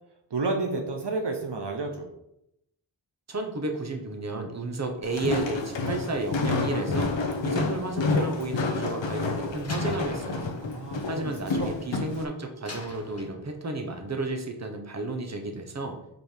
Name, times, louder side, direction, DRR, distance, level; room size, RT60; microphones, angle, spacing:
voice 1, 0.3-2.1 10.6-11.3 11.6-11.8, right 3 dB, 60° right, 2 dB, 0.9 m, -30 dB
voice 2, 3.3-10.5 11.1-16.0, right 2 dB, 35° right, 4 dB, 1.0 m, -32 dB
Walk footsteps, 5.0-12.2, left 3 dB, 70° left, 0.9 m, -29 dB
Slam, 9.6-12.1 12.7-13.9, left 2 dB, 35° left, 1.5 m, -45 dB
5.3 x 5.1 x 4.6 m, 0.81 s
wide cardioid pair, 100°, 46 cm